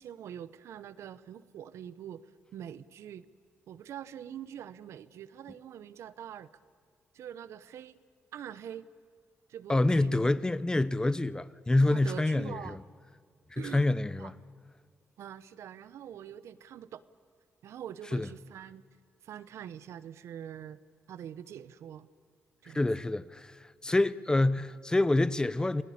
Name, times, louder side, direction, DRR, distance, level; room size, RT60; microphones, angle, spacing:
voice 1, 0.0-2.2 2.5-3.3 3.7-6.5 7.1-8.0 8.3-8.9 9.5-10.3 11.9-12.8 13.6-13.9 14.2-14.3 15.2-17.0 17.6-18.8 19.2-20.8 21.1-22.1 22.6-22.9, right 9 dB, 80° right, 0.9 m, -44 dB
voice 2, 9.7-12.8 13.5-14.3 18.1-18.3 22.7-25.8, left 2 dB, 15° left, 0.7 m, -27 dB
27.5 x 17.5 x 8.6 m
cardioid pair, 80°, 5 cm